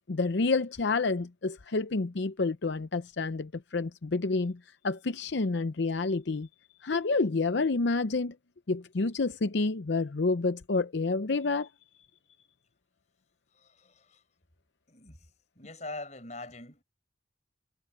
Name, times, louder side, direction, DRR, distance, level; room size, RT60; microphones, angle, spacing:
voice 1, 0.1-6.5 6.8-8.4 8.7-11.7, left 3 dB, 65° left, 0.7 m, -29 dB
voice 2, 13.5-14.2 14.9-15.3 15.6-16.8, left 2 dB, 40° left, 5.6 m, -43 dB
head